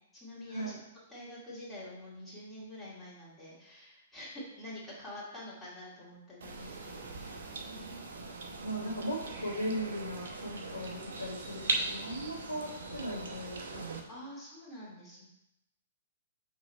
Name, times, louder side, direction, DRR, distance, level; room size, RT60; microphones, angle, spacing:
voice 1, 0.1-0.7 1.1-7.4 7.6-8.0 14.1-15.3, left 1 dB, 10° left, -8 dB, 2.4 m, -47 dB
sound 1, 6.4-14.0, right 3 dB, 60° right, 0.9 m, -39 dB
voice 2, 8.6-14.0, equal, 85° left, -5 dB, 1.6 m, -38 dB
6.2 x 3.8 x 4.4 m, 0.89 s
figure-of-eight pair, 110°, 0 cm